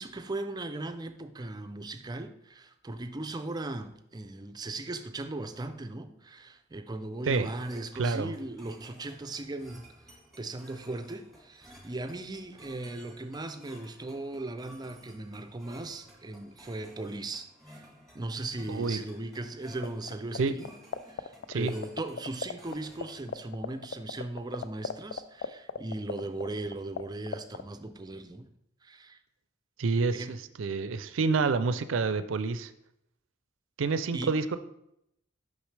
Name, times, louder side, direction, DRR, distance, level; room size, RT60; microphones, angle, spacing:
voice 1, 0.0-9.9 10.4-17.8 18.1-20.7 21.1-28.5 28.8-29.2 30.1-30.4 34.1-34.4, right 2 dB, 20° right, 8 dB, 0.4 m, -38 dB
sound 1, 7.3-23.3, equal, ahead, 1.5 m, -55 dB
voice 2, 8.0-8.3 18.7-19.0 20.4-20.6 21.5-21.7 29.8-32.7 33.8-34.6, right 4 dB, 85° right, 12 dB, 0.5 m, -28 dB
sound 2, 19.8-20.4 20.6-22.7 23.0-23.1 23.3-27.0 27.3-27.6, left 6 dB, 60° left, 0.3 m, -33 dB
6.2 x 5.6 x 3.3 m, 0.77 s
head